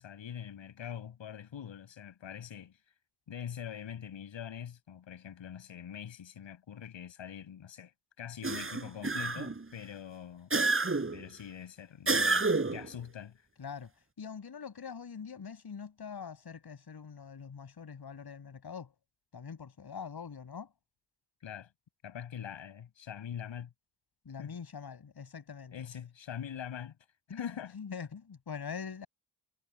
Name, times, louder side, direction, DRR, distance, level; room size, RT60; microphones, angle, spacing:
voice 1, 0.0-2.8 3.3-7.9 8.2-10.6 11.1-13.4 21.4-21.7 22.0-23.7 24.4-24.5 25.7-27.0 27.3-27.7, left 9 dB, 75° left, 7.4 m, -43 dB
sound 1, 8.4-9.6 10.5-11.2 12.1-12.9, right 3 dB, 30° right, 5.6 m, -29 dB
voice 2, 13.6-13.9 14.2-19.0 19.3-20.7 24.3-25.9 27.3-29.1, left 6 dB, 55° left, 7.3 m, -43 dB
cardioid pair, 65°, 45 cm